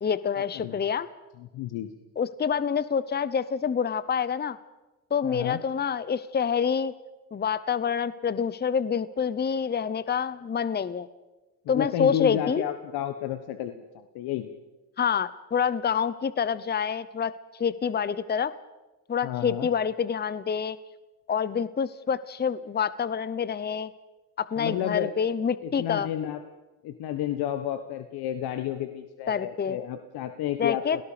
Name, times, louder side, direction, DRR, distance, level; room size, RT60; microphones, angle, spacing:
voice 1, 0.0-1.1 2.2-4.6 5.1-6.9 7.3-11.1 11.7-12.6 15.0-17.3 17.6-18.5 19.1-20.8 21.3-23.9 24.4-26.1 29.3-29.8 30.6-31.0, left 7 dB, 25° left, 16 dB, 0.9 m, -27 dB
voice 2, 1.4-1.9 5.2-5.6 11.6-14.5 19.2-19.7 24.6-25.1 25.6-26.4 26.8-31.0, left 11 dB, 65° left, 9 dB, 1.4 m, -31 dB
28.5 x 18.0 x 5.1 m, 1.1 s
supercardioid pair, 75°, 40 cm